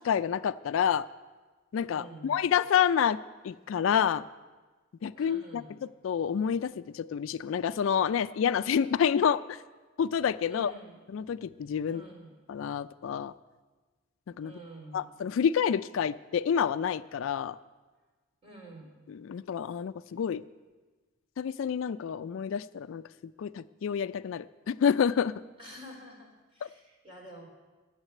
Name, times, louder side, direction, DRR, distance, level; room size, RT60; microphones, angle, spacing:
voice 1, 0.0-1.1 1.7-3.2 3.4-4.2 5.0-5.6 6.0-9.6 10.0-10.7 11.1-12.0 12.5-13.3 14.4-14.5 14.9-17.6 19.1-20.4 21.4-23.0 23.4-25.4 26.6-26.7, left 8 dB, 70° left, 15 dB, 0.3 m, -28 dB
voice 2, 1.9-2.4 5.1-5.7 10.5-11.0 11.8-12.3 14.4-15.1 18.4-18.9 25.6-27.5, right 1 dB, 30° right, -2 dB, 3.6 m, -48 dB
12.0 x 7.4 x 9.4 m, 1.3 s
head